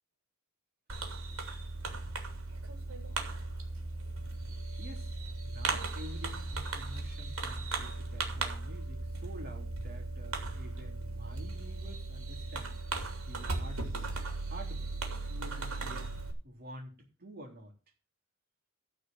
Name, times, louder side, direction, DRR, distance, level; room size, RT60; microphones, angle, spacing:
Fireworks, 0.9-16.3, right 3 dB, 80° right, 3.2 m, -37 dB
voice 1, 4.8-12.8 13.2-14.1 14.5-15.0 15.3-16.1 16.4-17.7, equal, 45° right, 1 dB, 3.5 m, -49 dB
14.0 x 5.0 x 7.3 m, 0.34 s
head